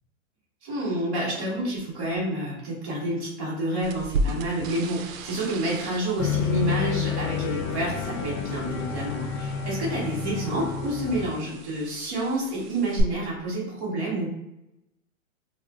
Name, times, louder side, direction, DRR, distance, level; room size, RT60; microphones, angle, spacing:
voice 1, 0.6-14.3, right 1 dB, 10° right, -14 dB, 0.4 m, -29 dB
sound 1, 3.8-13.0, right 2 dB, 75° right, 0.5 m, -36 dB
sound 2, 6.2-11.3, left 7 dB, 90° left, 0.5 m, -29 dB
2.3 x 2.3 x 3.3 m, 0.88 s
hypercardioid pair, 175°, 41 cm